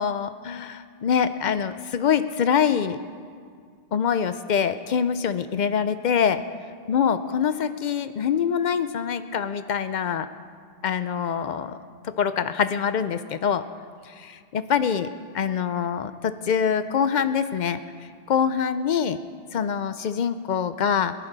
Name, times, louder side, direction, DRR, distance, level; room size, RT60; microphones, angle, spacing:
voice 1, 0.0-3.0 3.9-6.4 6.9-10.3 10.8-11.8 12.2-13.6 14.1-15.1 15.3-17.8 18.3-19.2 19.5-21.1, left 7 dB, 70° left, 12 dB, 0.4 m, -24 dB
22.5 x 10.5 x 4.0 m, 2.1 s
omnidirectional pair, 1.3 m